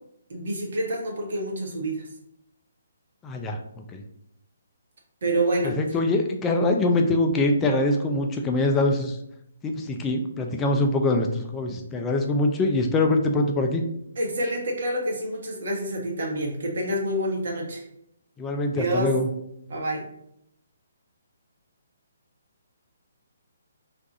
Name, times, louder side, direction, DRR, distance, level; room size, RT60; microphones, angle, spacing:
voice 1, 0.3-2.1 5.2-5.8 14.2-17.8 18.7-19.1 19.7-20.1, right 1 dB, 60° right, -1 dB, 1.0 m, -27 dB
voice 2, 3.2-3.6 3.9-4.0 5.6-9.2 9.6-13.8 18.4-19.3, left 2 dB, 15° left, 3 dB, 0.4 m, -23 dB
2.5 x 2.3 x 4.0 m, 0.77 s
figure-of-eight pair, 140°, 0 cm